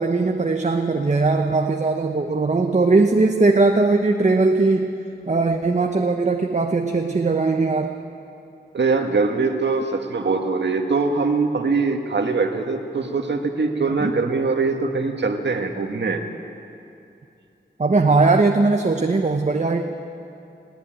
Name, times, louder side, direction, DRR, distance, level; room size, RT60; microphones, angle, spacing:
voice 1, 0.0-4.9 5.3-8.0 14.0-14.1 17.8-19.8, right 3 dB, 40° right, 4 dB, 1.0 m, -19 dB
voice 2, 8.7-16.2, right 4 dB, 70° right, 4 dB, 1.8 m, -22 dB
19.0 x 17.5 x 9.2 m, 2.7 s
wide cardioid pair, 95°, 19 cm